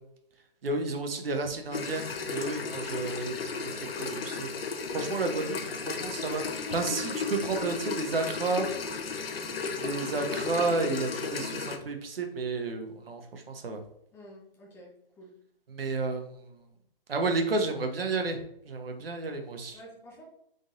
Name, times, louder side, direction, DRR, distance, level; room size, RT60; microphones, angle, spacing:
voice 1, 0.6-4.5 4.9-8.7 9.7-13.8 15.7-16.4 17.1-18.4 18.6-19.8, right 3 dB, 80° right, 5 dB, 0.9 m, -31 dB
sound 1, 1.7-11.8, left 4 dB, 85° left, 0.7 m, -34 dB
voice 2, 14.1-14.9 15.2-15.3 19.7-20.2, equal, 10° left, -3 dB, 0.7 m, -50 dB
3.8 x 3.8 x 2.5 m, 0.73 s
hypercardioid pair, 145°, 29 cm